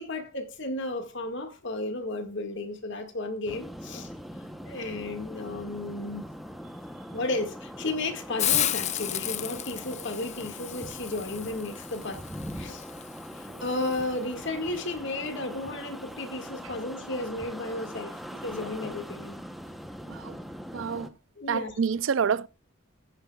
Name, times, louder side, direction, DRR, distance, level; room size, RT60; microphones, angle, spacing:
voice 1, 0.0-4.1 4.7-6.3 7.1-12.2 12.5-12.8 13.4-19.4 21.4-21.7, left 2 dB, 60° left, 1.9 m, -33 dB
sound 1, 3.5-21.1, equal, ahead, 0.8 m, -42 dB
Hiss, 8.4-14.0, left 11 dB, 35° left, 0.5 m, -33 dB
voice 2, 20.7-21.1 21.5-22.5, right 6 dB, 65° right, 0.4 m, -28 dB
16.0 x 9.7 x 2.4 m
head